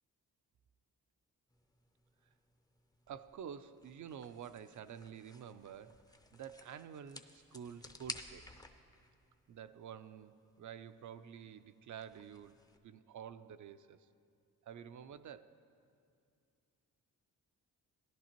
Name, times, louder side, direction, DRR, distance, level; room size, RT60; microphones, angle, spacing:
sound 1, 1.5-12.8, left 2 dB, 10° left, 0.5 m, -55 dB
voice 1, 3.1-6.0 6.3-8.5 9.5-12.6 12.8-14.1 14.6-15.6, right 8 dB, 55° right, 12 dB, 0.4 m, -49 dB
16.5 x 11.0 x 3.0 m, 2.4 s
cardioid pair, 90°, 37 cm